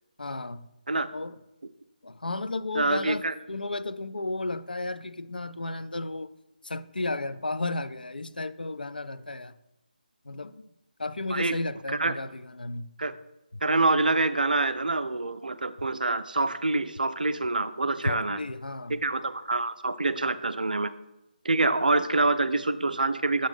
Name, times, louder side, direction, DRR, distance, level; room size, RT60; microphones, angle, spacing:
voice 1, 0.2-0.7 1.1-1.4 2.0-6.3 6.6-9.5 10.3-10.6 11.0-12.9 18.0-18.9, left 2 dB, 75° left, 0.3 m, -33 dB
voice 2, 2.7-3.3 11.3-11.6 11.9-12.2 13.0-13.1 13.6-18.4 18.9-20.9 21.4-23.5, right 2 dB, 65° right, 0.4 m, -26 dB
7.4 x 2.6 x 5.3 m
figure-of-eight pair, 150°, 5 cm